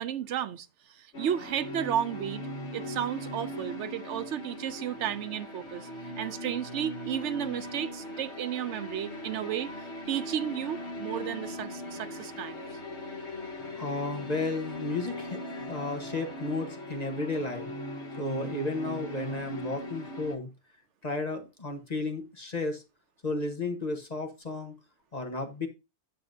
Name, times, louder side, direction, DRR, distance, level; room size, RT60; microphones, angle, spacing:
voice 1, 0.0-2.4 2.7-5.9 6.2-9.7 10.1-12.6, right 10 dB, 80° right, 1.0 m, -33 dB
sound 1, 1.1-20.4, left 1 dB, 75° left, 1.6 m, -39 dB
voice 2, 13.8-17.7 18.2-20.5 21.0-22.8 23.2-24.7 25.1-25.7, left 2 dB, 35° left, 1.2 m, -33 dB
9.1 x 6.9 x 2.7 m
omnidirectional pair, 1.2 m